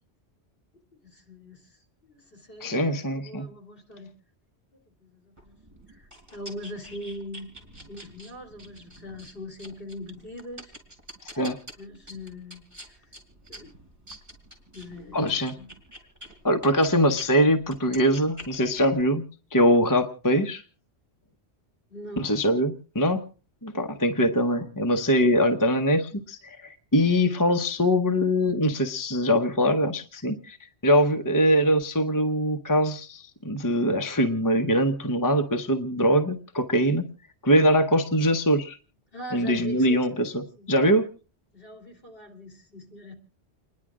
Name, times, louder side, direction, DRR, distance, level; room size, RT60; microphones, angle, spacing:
voice 1, 1.0-4.1 4.7-5.6 5.9-7.5 7.9-10.7 11.8-13.1 13.5-13.7 14.7-15.7 21.9-22.3 39.1-40.8 41.5-43.1, left 1 dB, 55° left, 3 dB, 3.0 m, -42 dB
voice 2, 2.6-3.5 11.4-11.6 15.1-15.5 16.4-19.2 19.5-20.6 22.2-23.2 23.6-30.6 30.8-37.1 37.4-38.8 39.3-40.4 40.7-41.1, equal, 20° left, 6 dB, 0.9 m, -22 dB
sound 1, 5.4-17.3 17.6-19.0, equal, 25° right, 4.1 m, -47 dB
29.5 x 10.5 x 3.7 m, 0.38 s
omnidirectional pair, 1.1 m